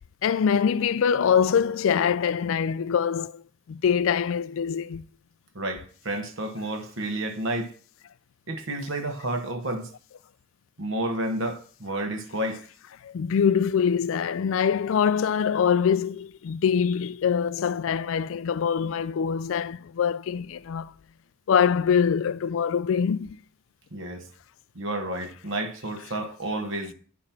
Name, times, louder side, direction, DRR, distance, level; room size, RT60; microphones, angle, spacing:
voice 1, 0.2-3.4 3.7-5.0 13.0-20.9 21.5-23.4, left 7 dB, 65° left, 0.3 m, -24 dB
voice 2, 5.5-7.7 8.5-9.9 10.8-12.6 23.9-24.3 24.7-26.9, right 1 dB, 60° right, 1.2 m, -30 dB
10.5 x 4.9 x 5.9 m
head